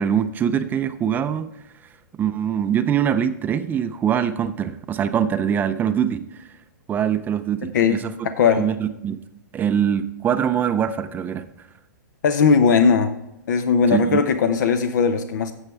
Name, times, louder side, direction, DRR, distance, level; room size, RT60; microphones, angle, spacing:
voice 1, 0.0-1.5 2.2-6.5 6.9-8.1 8.5-9.2 9.5-11.5 13.9-14.2, right 8 dB, 20° right, 11 dB, 0.5 m, -23 dB
voice 2, 8.2-8.7 12.2-13.1 13.5-15.5, left 5 dB, 70° left, 9 dB, 0.8 m, -18 dB
12.5 x 7.2 x 3.4 m, 0.87 s
hypercardioid pair, 135°, 10 cm